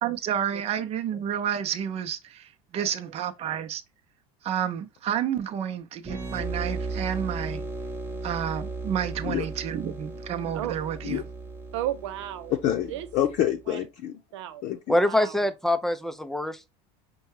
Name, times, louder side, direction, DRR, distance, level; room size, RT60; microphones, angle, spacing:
voice 1, 0.0-3.8 4.4-7.6 8.2-11.3, right 9 dB, 45° right, 0.7 m, -30 dB
sound 1, 6.0-13.6, right 3 dB, 15° right, 0.9 m, -36 dB
voice 2, 11.7-12.6 12.9-13.1 13.7-13.8 14.3-14.6 15.1-15.4, right 12 dB, 85° right, 0.6 m, -33 dB
voice 3, 12.6-14.2 14.6-15.0, left 11 dB, 55° left, 0.7 m, -27 dB
voice 4, 14.9-16.7, left 1 dB, ahead, 0.5 m, -24 dB
5.3 x 2.2 x 3.2 m
supercardioid pair, 100°, 15 cm